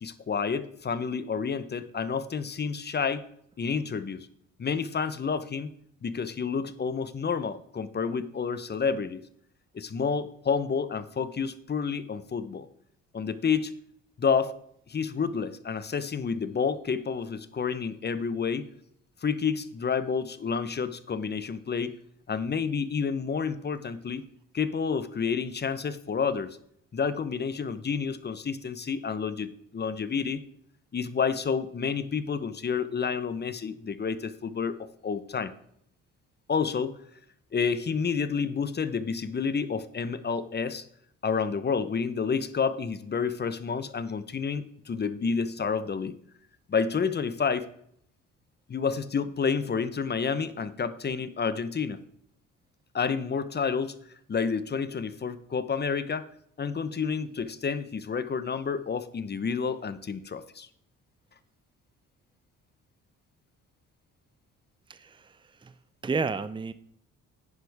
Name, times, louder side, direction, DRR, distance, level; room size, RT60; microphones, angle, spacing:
voice 1, 0.0-3.2 3.6-4.3 4.6-5.7 6.0-9.2 9.7-12.7 13.1-13.7 14.2-14.5 14.9-18.7 19.2-22.0 22.3-24.3 24.5-26.6 26.9-30.4 30.9-35.5 36.5-37.0 37.5-40.8 41.2-46.1 46.7-47.7 48.7-52.0 52.9-54.0 54.3-56.3 56.6-60.7, left 6 dB, 35° left, 13 dB, 0.9 m, -29 dB
voice 2, 64.9-65.7 66.0-66.7, right 4 dB, 15° right, 13 dB, 0.6 m, -32 dB
10.5 x 9.7 x 3.5 m, 0.67 s
cardioid pair, 90°, 30 cm